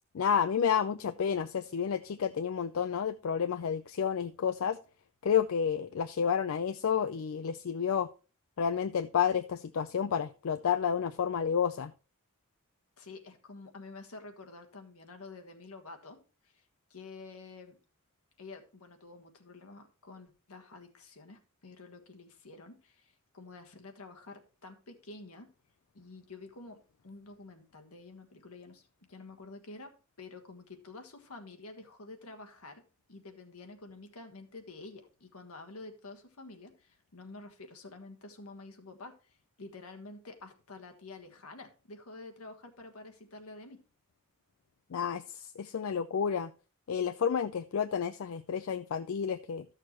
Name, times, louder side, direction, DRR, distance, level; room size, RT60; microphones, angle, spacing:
voice 1, 0.1-4.8 5.2-8.1 8.6-11.9 44.9-45.2 45.6-46.5 46.9-49.7, left 7 dB, 70° left, 0.4 m, -30 dB
voice 2, 13.0-16.6 16.9-17.8 18.4-25.5 25.9-26.8 27.0-29.9 30.2-32.8 33.1-43.8, left 3 dB, 90° left, 1.5 m, -49 dB
13.0 x 6.5 x 3.0 m
head